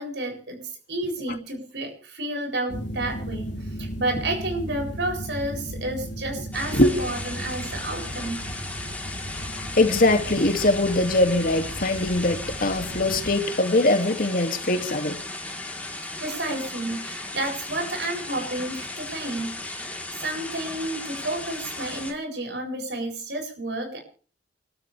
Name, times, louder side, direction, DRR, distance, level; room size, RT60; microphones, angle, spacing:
voice 1, 0.0-3.5 3.8-8.5 16.2-24.0, right 2 dB, 75° right, 7.6 m, -31 dB
sound 1, 2.7-13.3, equal, 80° left, 3.5 m, -36 dB
sound 2, 6.5-22.1, left 2 dB, 10° left, 3.8 m, -36 dB
voice 2, 9.5-15.2, left 2 dB, 55° left, 2.5 m, -22 dB
29.5 x 13.5 x 3.5 m
head